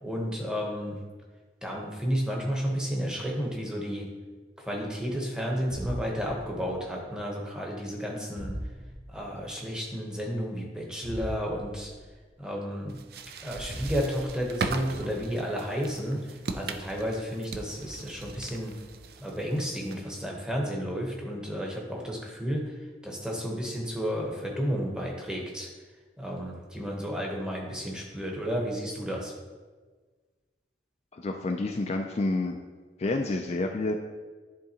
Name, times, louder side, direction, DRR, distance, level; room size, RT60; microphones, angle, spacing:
voice 1, 0.0-1.0 1.6-4.1 4.6-8.6 9.1-11.9 12.4-13.0 13.4-18.7 19.2-22.7 23.0-25.7 26.2-29.3, equal, 5° right, -2 dB, 0.9 m, -32 dB
sound 1, 5.7-6.8 8.3-9.3 11.0-12.1 13.7-14.7, equal, 40° right, 1.0 m, -39 dB
sound 2, 12.9-20.2, right 4 dB, 55° right, 0.4 m, -39 dB
voice 2, 31.1-32.6 33.0-33.9, left 2 dB, 35° left, 3 dB, 0.3 m, -29 dB
10.5 x 3.7 x 2.9 m, 1.4 s
head